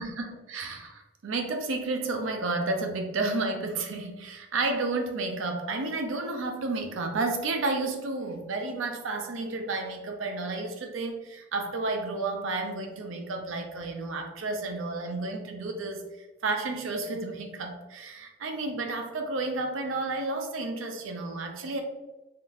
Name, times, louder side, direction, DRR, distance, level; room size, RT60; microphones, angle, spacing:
voice 1, 0.0-16.0 16.4-21.8, right 3 dB, 80° right, 3 dB, 0.5 m, -31 dB
3.6 x 2.4 x 2.6 m, 1.1 s
head